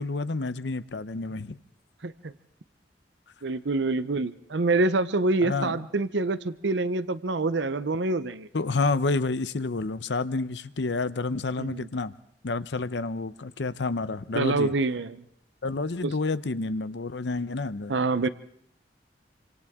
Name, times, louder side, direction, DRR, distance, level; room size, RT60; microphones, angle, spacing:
voice 1, 0.0-1.6 5.4-5.8 8.5-12.1 12.4-14.7 15.6-17.9 18.2-18.3, left 3 dB, 80° left, 0.7 m, -29 dB
voice 2, 2.0-2.3 3.4-8.5 11.6-11.9 14.3-15.2 16.0-16.1 17.9-18.3, right 3 dB, 80° right, 0.7 m, -26 dB
28.0 x 25.5 x 3.7 m
head